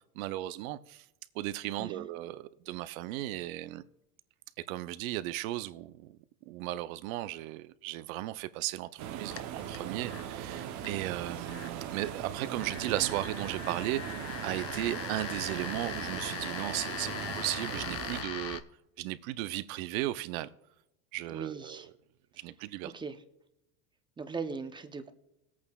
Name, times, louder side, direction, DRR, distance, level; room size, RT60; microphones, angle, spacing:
voice 1, 0.1-1.0 1.3-3.8 4.6-6.2 6.5-18.6 19.0-20.5 21.1-21.8 22.4-22.9, right 16 dB, 75° right, 0.6 m, -36 dB
sound 1, 9.0-18.2, right 10 dB, 40° right, 0.8 m, -39 dB
sound 2, 9.3-18.6, left 9 dB, 35° left, 0.7 m, -42 dB
voice 2, 21.3-21.9 22.8-23.2 24.2-25.1, right 4 dB, 10° right, 0.6 m, -39 dB
21.0 x 8.5 x 2.3 m
supercardioid pair, 125°, 41 cm